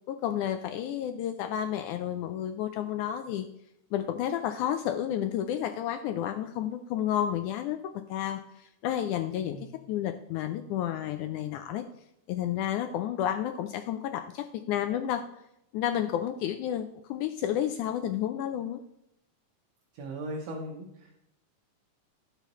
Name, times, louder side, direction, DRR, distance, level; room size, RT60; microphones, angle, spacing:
voice 1, 0.1-3.5 3.9-7.8 8.1-9.6 9.9-11.8 12.3-15.3 15.7-18.8, left 10 dB, 80° left, 7 dB, 1.8 m, -31 dB
voice 2, 9.4-9.7 19.9-21.1, right 1 dB, 65° right, 0 dB, 1.8 m, -38 dB
16.0 x 5.7 x 3.0 m, 0.81 s
omnidirectional pair, 3.9 m